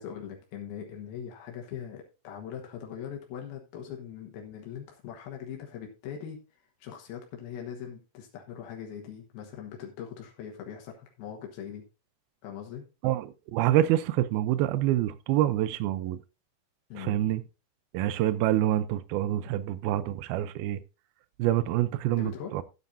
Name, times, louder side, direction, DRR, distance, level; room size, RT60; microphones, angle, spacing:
voice 1, 0.0-11.8 12.4-12.8 16.9-17.3 22.1-22.6, left 8 dB, 90° left, 3.2 m, -41 dB
voice 2, 13.0-16.2 17.0-17.4 17.9-20.8 21.4-22.6, right 13 dB, 90° right, 2.6 m, -26 dB
13.0 x 9.5 x 2.6 m
omnidirectional pair, 4.2 m